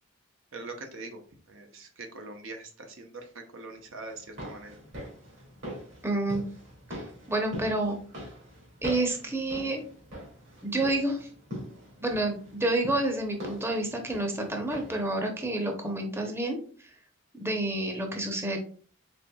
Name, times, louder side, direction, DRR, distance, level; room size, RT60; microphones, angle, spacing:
voice 1, 0.5-1.2 1.5-4.8, right 3 dB, 80° right, 4 dB, 0.8 m, -43 dB
sound 1, 4.1-15.1 15.4-15.5, equal, 65° right, 2.0 m, -42 dB
voice 2, 6.0-6.4 7.3-8.0 8.8-9.8 10.6-11.3 12.0-16.9 17.4-18.6, right 2 dB, 10° right, 2 dB, 0.7 m, -29 dB
4.3 x 3.9 x 2.2 m, 0.43 s
head